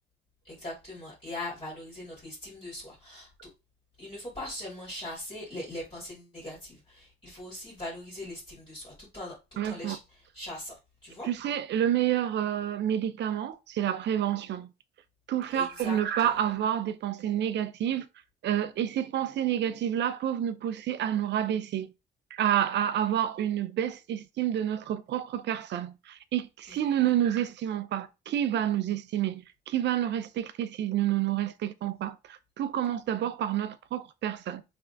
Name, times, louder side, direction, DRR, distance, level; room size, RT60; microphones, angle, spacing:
voice 1, 0.4-3.5 4.0-11.3 15.5-16.3 26.7-26.8, left 1 dB, 25° left, 2.3 m, -41 dB
voice 2, 9.6-10.0 11.3-14.7 15.3-18.1 18.4-21.9 22.3-34.6, right 10 dB, 60° right, 0.5 m, -29 dB
3.5 x 3.3 x 2.6 m
cardioid pair, 90°, 20 cm